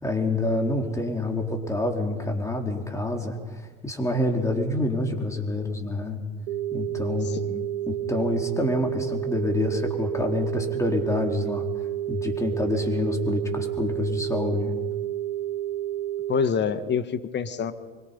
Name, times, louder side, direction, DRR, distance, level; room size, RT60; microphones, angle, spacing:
voice 1, 0.0-6.2 6.7-7.3 7.9-11.7 12.1-14.7, left 2 dB, 10° left, 3 dB, 4.1 m, -27 dB
sound 1, 6.5-16.5, right 13 dB, 90° right, 0.7 m, -30 dB
voice 2, 7.2-7.7 16.3-17.7, left 7 dB, 35° left, 11 dB, 1.6 m, -27 dB
25.0 x 23.5 x 5.4 m, 1.4 s
hypercardioid pair, 85°, 29 cm